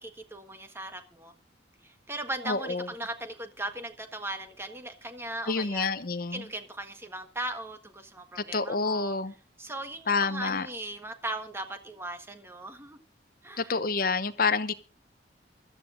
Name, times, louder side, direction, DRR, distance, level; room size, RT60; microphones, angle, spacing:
voice 1, 0.0-1.3 1.8-5.9 6.3-9.1 9.6-13.0 13.4-13.7, right 1 dB, 15° right, 1.4 m, -38 dB
voice 2, 2.5-2.9 5.5-6.4 8.4-9.3 10.1-10.7 13.6-14.7, left 4 dB, 50° left, 0.9 m, -28 dB
23.5 x 13.0 x 2.6 m
head